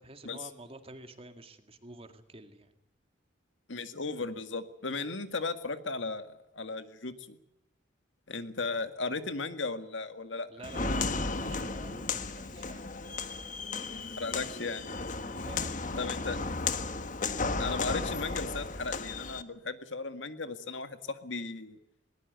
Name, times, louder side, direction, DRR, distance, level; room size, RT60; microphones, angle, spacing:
voice 1, 0.0-2.7 10.5-12.9 15.2-16.2, right 2 dB, 30° right, 7 dB, 2.1 m, -49 dB
voice 2, 3.7-7.4 8.3-10.5 13.9-15.0 16.0-16.4 17.6-21.8, left 3 dB, 85° left, 9 dB, 1.9 m, -36 dB
Walk footsteps, 10.6-19.4, left 3 dB, 45° left, 1.4 m, -34 dB
21.0 x 19.5 x 8.2 m, 0.85 s
head